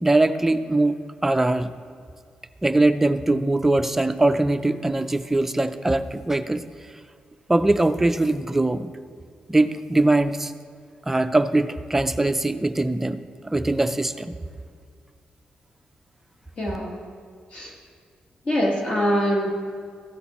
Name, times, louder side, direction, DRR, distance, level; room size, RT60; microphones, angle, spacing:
voice 1, 0.0-1.0 1.2-1.7 2.6-6.6 7.5-8.9 9.5-10.5 11.1-14.4, right 2 dB, 10° right, 9 dB, 0.3 m, -21 dB
voice 2, 16.6-17.0 17.5-17.7 18.4-19.5, equal, 40° left, -1 dB, 1.4 m, -23 dB
15.0 x 8.3 x 3.0 m, 2.2 s
wide cardioid pair, 165°, 3 cm